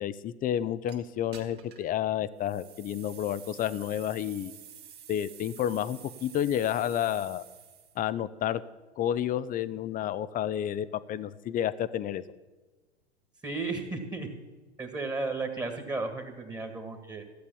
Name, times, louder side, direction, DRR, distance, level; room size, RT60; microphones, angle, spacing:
voice 1, 0.0-4.5 5.1-7.4 8.0-8.6 9.0-12.2, left 10 dB, 25° left, 16 dB, 0.6 m, -30 dB
sound 1, 0.9-1.0 1.3-1.9 2.4-8.0, right 9 dB, 30° right, 2.2 m, -50 dB
voice 2, 13.4-14.3 14.8-17.2, right 3 dB, 10° right, 5 dB, 1.8 m, -34 dB
15.0 x 8.2 x 7.1 m, 1.3 s
hypercardioid pair, 95°, 33 cm